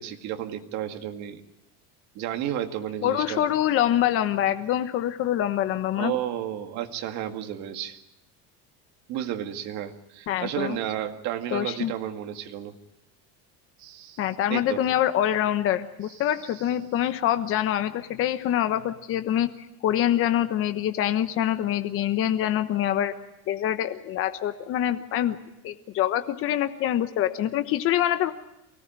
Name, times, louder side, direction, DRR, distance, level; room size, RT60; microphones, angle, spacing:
voice 1, 0.0-1.4 2.1-3.4 5.9-8.0 9.1-12.7 13.8-14.8 16.2-16.6, right 11 dB, 50° right, 5 dB, 2.1 m, -32 dB
voice 2, 3.0-6.1 10.3-10.8 11.5-11.9 14.2-19.5 19.8-23.1 23.5-25.4 25.6-28.3, left 11 dB, 35° left, 9 dB, 1.2 m, -25 dB
24.0 x 18.0 x 8.9 m, 0.89 s
cardioid pair, 155°, 36 cm